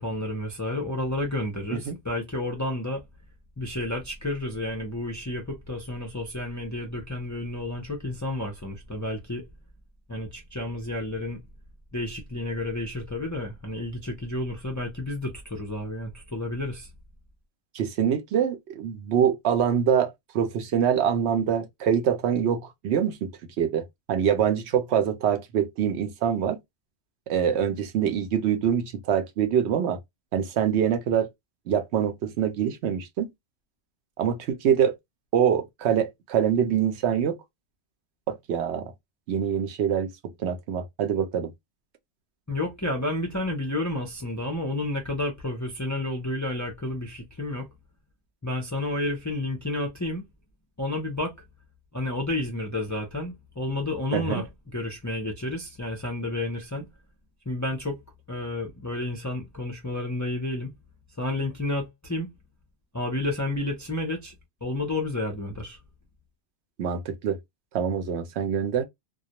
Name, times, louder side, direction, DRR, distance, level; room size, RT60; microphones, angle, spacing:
voice 1, 0.0-3.0 3.6-9.4 10.1-11.4 11.9-16.9 42.5-47.7 48.4-50.3 50.8-51.3 51.9-56.9 57.5-58.0 58.3-60.7 61.2-62.3 62.9-64.3 64.6-65.8, left 1 dB, 25° left, 0.4 m, -31 dB
voice 2, 17.7-23.3 23.6-26.6 27.3-30.0 30.3-31.3 31.7-33.3 34.2-34.9 35.3-37.4 38.3-38.9 39.3-40.1 40.4-41.5 54.1-54.4 66.8-67.4 67.7-68.8, right 8 dB, 75° right, 0.8 m, -25 dB
2.3 x 2.1 x 2.7 m
omnidirectional pair, 1.2 m